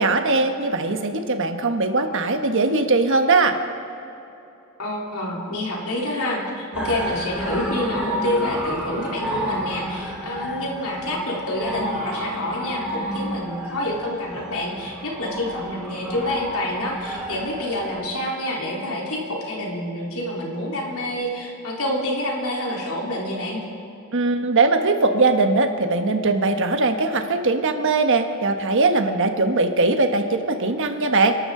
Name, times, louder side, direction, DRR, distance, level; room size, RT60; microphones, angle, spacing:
voice 1, 0.0-3.6 24.1-31.4, right 3 dB, 60° right, 6 dB, 1.2 m, -20 dB
voice 2, 4.8-23.6, left 1 dB, 80° left, -3 dB, 3.7 m, -27 dB
sound 1, 6.7-18.0, equal, 5° right, 3.0 m, -31 dB
29.0 x 12.0 x 3.9 m, 2.8 s
head